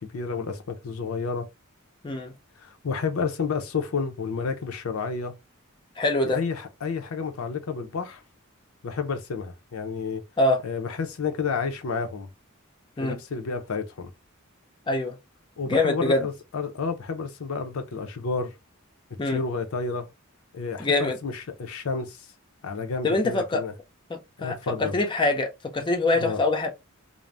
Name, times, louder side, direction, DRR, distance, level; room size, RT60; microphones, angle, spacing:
voice 1, 0.0-1.5 2.6-5.4 6.2-8.2 8.8-10.2 10.6-12.3 13.0-14.1 15.6-18.5 19.2-20.1 20.5-22.3 22.6-23.7 24.4-25.0 26.1-26.4, left 5 dB, 75° left, 0.5 m, -30 dB
voice 2, 6.0-6.4 10.4-10.6 13.0-13.2 14.9-15.2 15.7-16.3 19.2-19.4 20.8-21.2 23.0-23.6 24.1-26.7, left 2 dB, 20° left, 0.5 m, -24 dB
2.5 x 2.0 x 3.2 m
head